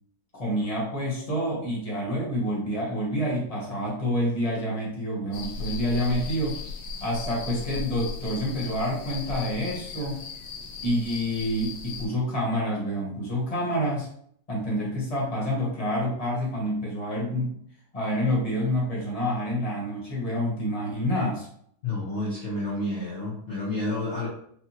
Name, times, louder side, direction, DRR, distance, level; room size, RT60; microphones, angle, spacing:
voice 1, 0.3-6.6 7.0-10.2 10.8-14.1 14.5-17.6 17.9-21.5, equal, 25° left, -4 dB, 1.4 m, -28 dB
sound 1, 5.3-12.1, left 5 dB, 90° left, 1.4 m, -37 dB
voice 2, 21.8-24.3, left 2 dB, 50° left, -7 dB, 1.3 m, -30 dB
5.7 x 2.6 x 2.9 m, 0.65 s
omnidirectional pair, 1.7 m